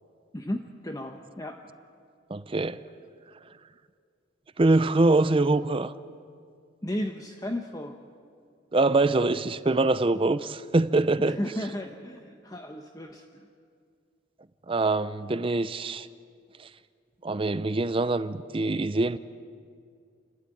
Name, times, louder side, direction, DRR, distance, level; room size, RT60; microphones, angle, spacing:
voice 1, 0.3-1.6 6.8-8.0 11.2-13.5, left 1 dB, 20° left, 0.9 m, -34 dB
voice 2, 2.3-2.8 4.6-5.9 8.7-11.4 14.7-16.1 16.6-16.7 17.2-19.2, right 2 dB, 30° right, 0.5 m, -24 dB
30.0 x 12.5 x 9.1 m
head